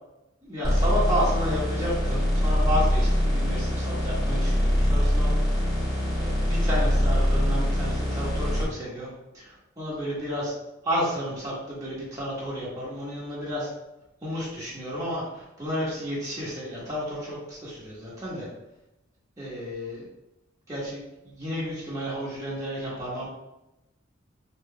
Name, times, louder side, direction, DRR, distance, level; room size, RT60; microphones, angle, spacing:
voice 1, 0.4-5.3 6.2-9.1 9.3-10.5 10.8-13.7 14.2-18.5 19.4-20.0 20.7-23.3, equal, 15° right, -8 dB, 1.0 m, -31 dB
sound 1, 0.6-8.6, equal, ahead, 1.4 m, -23 dB
5.1 x 2.8 x 2.2 m, 0.93 s
head